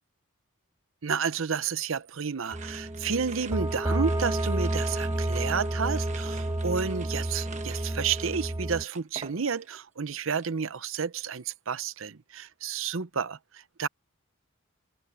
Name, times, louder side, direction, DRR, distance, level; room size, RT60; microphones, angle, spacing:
voice 1, 1.0-13.9, right 6 dB, 65° right, 0.7 m, -31 dB
sound 1, 2.4-9.8 10.1-10.6, right 5 dB, 35° right, 1.3 m, -47 dB
sound 2, 2.5-8.8, right 1 dB, 15° right, 0.7 m, -30 dB
head